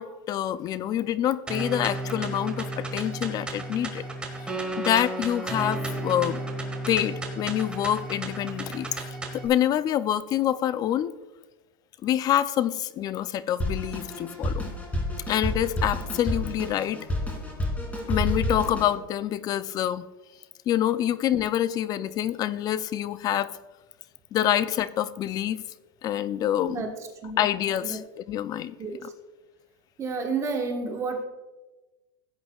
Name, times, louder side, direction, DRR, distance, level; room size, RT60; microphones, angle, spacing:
voice 1, 0.0-4.1 4.4-6.4 6.9-9.1 9.3-11.2 12.0-14.7 15.3-17.1 18.1-20.1 20.7-23.5 24.3-25.6 26.0-26.8 27.4-28.0 28.3-28.7 29.0-29.1, left 11 dB, 35° left, 16 dB, 0.4 m, -26 dB
sound 1, 1.5-9.5, right 2 dB, 10° right, 1.5 m, -33 dB
sound 2, 5.4-8.6 8.9-9.2, left 1 dB, 45° right, 2.1 m, -50 dB
Drum kit, 13.6-18.9, left 1 dB, 15° left, 2.8 m, -29 dB
voice 2, 30.0-31.3, right 4 dB, 25° right, 2 dB, 1.4 m, -30 dB
15.5 x 8.1 x 2.4 m, 1.1 s
supercardioid pair, 130°, 11 cm